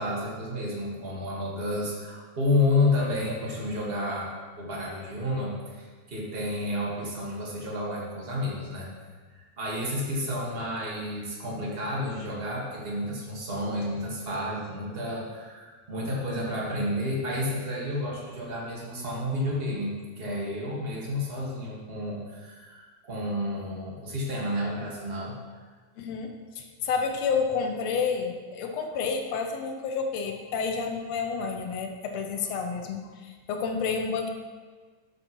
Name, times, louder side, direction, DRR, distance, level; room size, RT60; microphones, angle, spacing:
voice 1, 0.0-4.3 4.6-8.9 9.3-25.3, left 1 dB, 30° right, -4 dB, 1.2 m, -30 dB
voice 2, 26.0-26.3 26.6-34.3, left 5 dB, 70° left, 4 dB, 1.8 m, -30 dB
12.0 x 7.3 x 3.0 m, 1.4 s
omnidirectional pair, 3.4 m